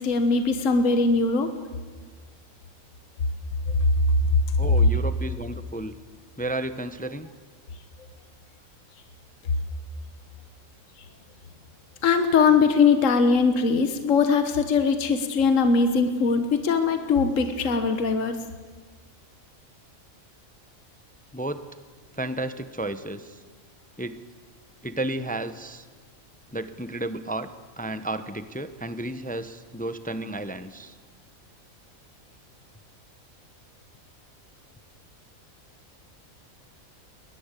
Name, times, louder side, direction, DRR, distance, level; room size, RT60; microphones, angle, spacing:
voice 1, 0.0-1.5 12.0-18.4, left 5 dB, 65° left, 8 dB, 1.6 m, -21 dB
voice 2, 4.6-6.0 6.4-7.3 21.3-21.6 22.2-23.4 24.0-24.2 24.8-25.9 26.5-31.0, right 1 dB, 10° left, 11 dB, 0.6 m, -32 dB
22.0 x 19.0 x 8.3 m, 1.5 s
omnidirectional pair, 1.5 m